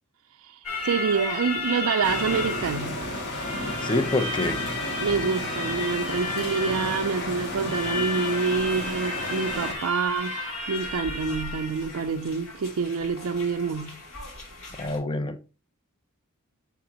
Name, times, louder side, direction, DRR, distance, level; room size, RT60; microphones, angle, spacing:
voice 1, 0.4-3.0 5.0-14.0, right 5 dB, 70° right, 0.4 m, -27 dB
sound 1, 0.6-15.0, left 3 dB, 65° left, 2.8 m, -34 dB
sound 2, 2.0-9.7, left 1 dB, 50° left, 2.0 m, -33 dB
voice 2, 3.8-4.6 14.8-15.4, left 2 dB, 20° left, 0.6 m, -26 dB
6.9 x 5.8 x 2.8 m
head